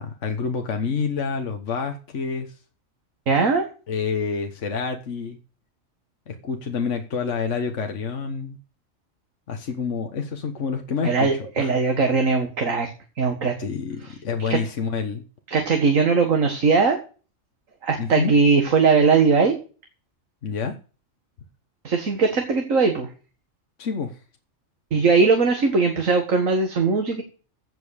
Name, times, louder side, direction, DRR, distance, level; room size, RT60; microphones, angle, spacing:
voice 1, 0.0-2.5 3.9-5.4 6.3-8.6 9.5-11.3 11.6-11.8 13.6-15.2 18.0-18.3 20.4-20.8 23.8-24.2, left 5 dB, 65° left, 5 dB, 1.6 m, -28 dB
voice 2, 3.3-3.7 11.0-12.9 13.2-13.6 14.5-14.6 15.5-17.0 17.8-19.6 21.8-23.1 24.9-27.2, right 4 dB, 85° right, 4 dB, 2.2 m, -20 dB
16.0 x 5.5 x 6.5 m, 0.36 s
omnidirectional pair, 1.3 m